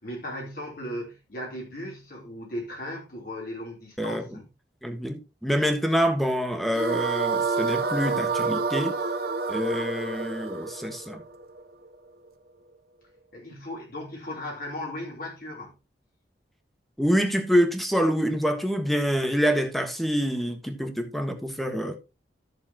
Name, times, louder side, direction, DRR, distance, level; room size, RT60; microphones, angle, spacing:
voice 1, 0.0-4.4 13.3-15.7, left 1 dB, 55° left, 3.5 m, -36 dB
voice 2, 4.8-9.0 9.5-11.2 17.0-22.0, equal, ahead, 1.4 m, -26 dB
sound 1, 6.7-11.9, right 4 dB, 60° right, 0.8 m, -28 dB
13.5 x 7.0 x 2.9 m
head